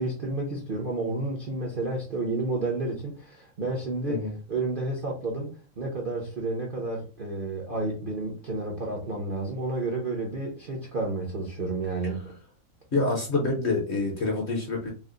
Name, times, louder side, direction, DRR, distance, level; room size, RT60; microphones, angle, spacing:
voice 1, 0.0-4.2 4.5-5.5 5.8-12.3, right 2 dB, 50° right, 0.6 m, -31 dB
voice 2, 12.9-14.9, left 3 dB, 50° left, 0.9 m, -27 dB
3.3 x 2.1 x 3.7 m
omnidirectional pair, 1.9 m